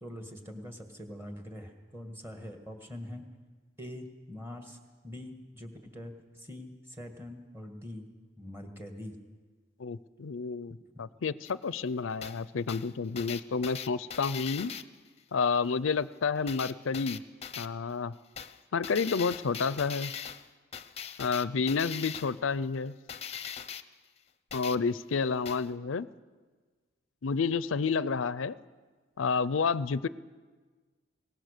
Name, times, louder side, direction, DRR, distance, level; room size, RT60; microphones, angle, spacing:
voice 1, 0.0-3.3 3.8-4.8 5.0-8.1 8.4-9.2, left 1 dB, 10° right, 4 dB, 1.9 m, -43 dB
voice 2, 9.8-14.7 15.3-17.2 17.6-18.1 18.7-20.1 21.2-22.9 24.5-26.1 27.2-28.5 29.2-30.1, left 5 dB, 80° left, 17 dB, 0.5 m, -30 dB
sound 1, 11.4-11.5 12.2-12.4 12.7-14.8 16.5-17.7 18.4-18.6 18.8-20.5 20.7-22.4 23.1-23.8 24.5-24.8 25.5-25.7, left 8 dB, 30° left, 0.7 m, -40 dB
22.5 x 18.5 x 6.7 m, 1.4 s
head